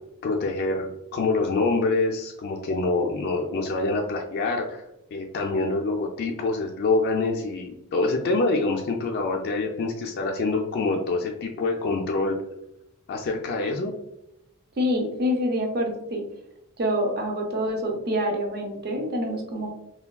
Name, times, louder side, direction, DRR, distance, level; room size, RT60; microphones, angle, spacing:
voice 1, 0.2-4.8 5.1-12.4 13.1-13.9, left 3 dB, 45° left, 1 dB, 0.3 m, -26 dB
voice 2, 14.8-16.2 16.8-19.7, equal, 45° right, 2 dB, 0.6 m, -26 dB
3.4 x 2.2 x 2.2 m, 0.84 s
head